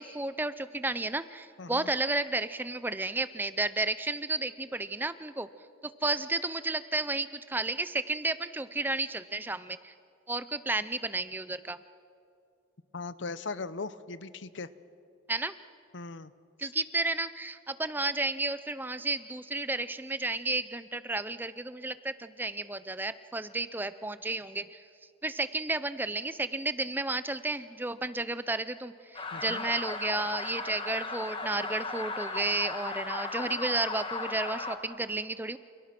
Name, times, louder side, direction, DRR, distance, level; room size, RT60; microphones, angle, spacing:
voice 1, 0.0-5.5 5.8-9.9 10.3-11.8 15.3-15.5 16.6-24.8 25.2-35.6, right 2 dB, 10° right, 13 dB, 0.5 m, -32 dB
voice 2, 1.6-1.9 12.9-14.7 15.9-16.3 16.6-16.7 29.3-29.7, left 3 dB, 65° left, 15 dB, 0.8 m, -39 dB
sound 1, 29.1-34.8, left 3 dB, 25° left, 1.9 m, -36 dB
29.0 x 28.5 x 6.0 m, 2.5 s
head